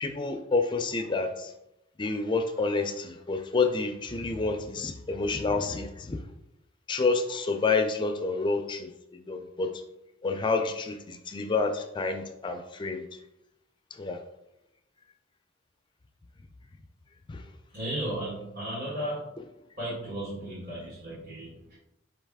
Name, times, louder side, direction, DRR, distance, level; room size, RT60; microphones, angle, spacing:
voice 1, 0.0-1.5 2.0-6.2 6.9-9.7 10.2-13.0 14.0-14.2 17.3-17.4, left 3 dB, 25° left, 6 dB, 0.4 m, -29 dB
voice 2, 17.7-19.3 19.8-21.8, right 1 dB, 45° right, -9 dB, 1.4 m, -35 dB
4.6 x 3.2 x 3.5 m, 0.85 s
head